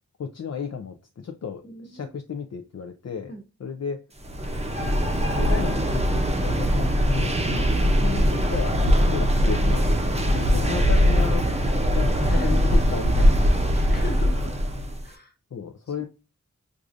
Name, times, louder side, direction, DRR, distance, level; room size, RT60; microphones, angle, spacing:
voice 1, 0.2-3.3 3.6-4.0 4.4-4.5 4.8-5.0 5.4-7.4 7.7-9.8 10.3-13.5 14.0-14.1 15.5-16.0, left 6 dB, 60° left, 0.5 m, -34 dB
voice 2, 1.6-2.2 3.3-3.4 7.4-7.9 10.2-11.0 12.2-12.8 13.7-14.6 15.0-15.3 16.0-16.1, right 1 dB, 35° left, 1.1 m, -39 dB
sound 1, 4.2-15.0, equal, 20° right, 0.7 m, -21 dB
4.7 x 2.6 x 2.3 m
wide cardioid pair, 70°, 30 cm